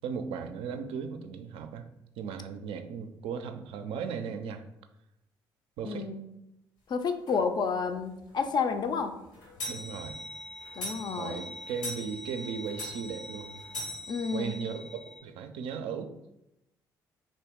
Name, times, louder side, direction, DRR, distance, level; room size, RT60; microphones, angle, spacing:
voice 1, 0.0-1.9 2.2-4.6 5.8-6.1 9.7-10.2 11.2-13.6 14.3-16.1, right 6 dB, 65° right, 8 dB, 0.4 m, -37 dB
voice 2, 5.8-6.3 6.9-9.2 10.8-11.4 14.1-14.6, left 5 dB, 50° left, 7 dB, 0.4 m, -30 dB
sound 1, 7.3-7.4 7.9-8.0 8.3-8.4 8.7-15.2, left 1 dB, 85° left, 0.8 m, -41 dB
2.9 x 2.6 x 3.5 m, 0.87 s
hypercardioid pair, 50°, 10 cm